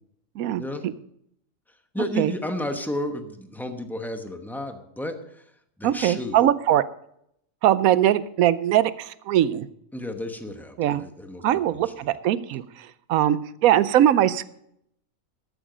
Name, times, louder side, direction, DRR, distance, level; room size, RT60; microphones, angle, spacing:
voice 1, 1.7-5.5 5.8-6.4 9.9-11.4 11.7-12.1, left 1 dB, ahead, 6 dB, 0.9 m, -32 dB
voice 2, 5.8-6.8 7.6-9.7 10.8-11.0 11.4-14.5, right 11 dB, 85° right, 16 dB, 1.1 m, -21 dB
13.0 x 9.1 x 5.1 m, 0.73 s
omnidirectional pair, 1.4 m